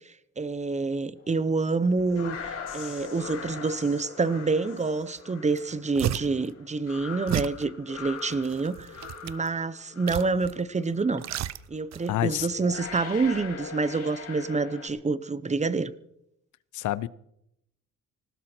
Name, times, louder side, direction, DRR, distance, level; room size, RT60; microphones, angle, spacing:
voice 1, 0.1-11.2 11.7-15.9, right 4 dB, 25° right, 16 dB, 0.9 m, -27 dB
sound 1, 1.7-10.6 10.9-11.3 12.1-12.2 12.5-14.9, left 6 dB, 55° left, 5.0 m, -41 dB
sound 2, 5.2-5.3 5.5-6.5 7.3-7.6 8.3-9.5 10.1-10.6 10.9-12.1 12.4-12.5, right 12 dB, 60° right, 0.7 m, -32 dB
voice 2, 12.1-12.5 16.7-17.1, left 14 dB, 75° left, 19 dB, 0.7 m, -27 dB
19.0 x 16.0 x 4.5 m, 0.79 s
cardioid pair, 90°, 30 cm